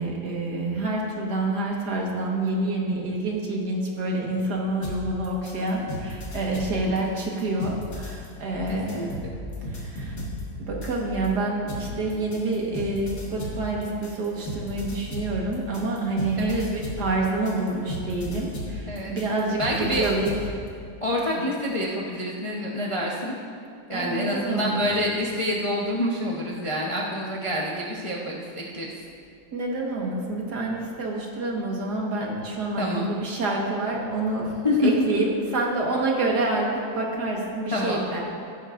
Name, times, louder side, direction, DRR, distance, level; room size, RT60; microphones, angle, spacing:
voice 1, 0.0-9.1 9.6-10.2 10.6-20.3 21.4-21.5 23.9-25.1 29.5-34.5 34.8-36.7 36.9-38.2, right 2 dB, 65° right, -1 dB, 2.1 m, -27 dB
sound 1, 4.8-11.3 11.7-20.5, equal, 50° left, 2.1 m, -35 dB
voice 2, 8.7-9.3 16.4-16.6 18.9-19.2 19.6-20.1 21.0-23.3 23.9-28.9 32.8-33.1 34.6-34.9 37.7-38.0, left 1 dB, 25° left, -3 dB, 0.7 m, -27 dB
15.0 x 12.0 x 2.6 m, 2.4 s
omnidirectional pair, 1.9 m